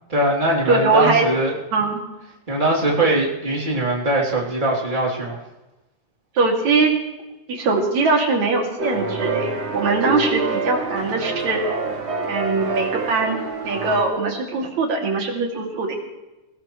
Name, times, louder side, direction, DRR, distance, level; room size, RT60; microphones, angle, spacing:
voice 1, 0.1-1.5 2.5-5.4, right 1 dB, 15° right, -3 dB, 3.3 m, -21 dB
voice 2, 0.7-1.3 1.7-2.0 6.4-6.9 7.5-11.6 12.3-13.4 13.6-16.0, right 3 dB, 65° right, 1 dB, 4.0 m, -21 dB
sound 1, 8.8-14.0, right 3 dB, 35° right, 1.0 m, -26 dB
20.0 x 19.5 x 3.3 m, 1.0 s
omnidirectional pair, 3.6 m